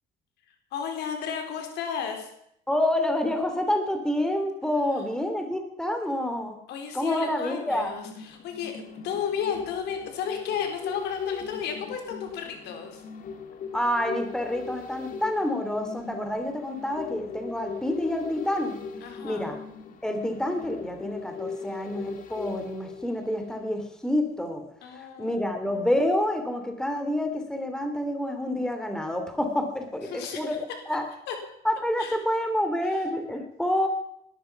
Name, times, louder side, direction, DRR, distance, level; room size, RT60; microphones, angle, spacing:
voice 1, 0.7-2.3 6.7-13.0 19.0-19.5 24.8-25.4 30.1-30.6 31.3-31.4 32.0-32.1 32.9-33.0, left 7 dB, 80° left, 4 dB, 4.1 m, -33 dB
voice 2, 2.7-6.5 6.9-7.9 13.7-18.8 19.2-19.5 20.0-24.6 24.9-31.0 31.6-33.9, left 1 dB, 5° left, 5 dB, 3.1 m, -28 dB
sound 1, 7.7-23.9 24.3-24.4, left 5 dB, 50° left, 2.6 m, -39 dB
19.0 x 13.0 x 5.9 m, 0.75 s
cardioid pair, 110°, 17 cm